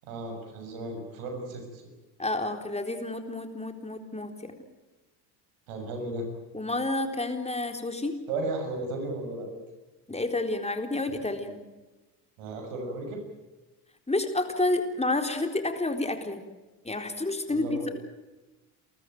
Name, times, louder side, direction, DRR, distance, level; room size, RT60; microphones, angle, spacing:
voice 1, 0.0-1.8 5.7-6.3 8.3-9.6 12.4-13.2 17.5-17.9, right 2 dB, 75° right, 4 dB, 6.9 m, -35 dB
voice 2, 2.2-4.5 6.5-8.2 10.1-11.6 14.1-16.4 16.8-17.9, left 2 dB, 15° left, 5 dB, 4.0 m, -30 dB
29.0 x 14.0 x 9.3 m, 1.1 s
hypercardioid pair, 70°, 49 cm